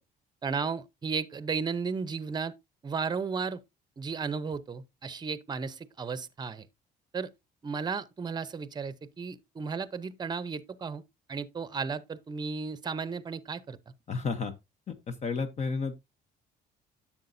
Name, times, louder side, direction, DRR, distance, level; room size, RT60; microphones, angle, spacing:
voice 1, 0.4-2.5 2.8-3.6 4.0-6.7 7.1-7.3 7.6-11.0 11.3-13.8, right 5 dB, 25° right, 0.7 m, -34 dB
voice 2, 14.1-14.5 14.9-15.9, left 4 dB, 40° left, 0.9 m, -32 dB
10.5 x 7.3 x 2.6 m
cardioid pair, 110°, 17 cm